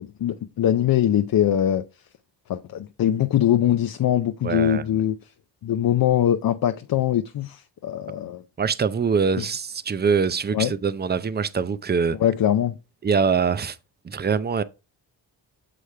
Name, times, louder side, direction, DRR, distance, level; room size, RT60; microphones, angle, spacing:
voice 1, 0.0-1.8 2.5-5.2 5.6-8.4 9.4-9.5 10.5-10.7 12.2-12.8, left 11 dB, 50° left, 0.6 m, -22 dB
voice 2, 4.4-4.8 8.6-12.2 13.0-13.8 14.0-14.6, right 6 dB, 20° right, 0.5 m, -23 dB
6.3 x 4.9 x 3.3 m
supercardioid pair, 55°, 46 cm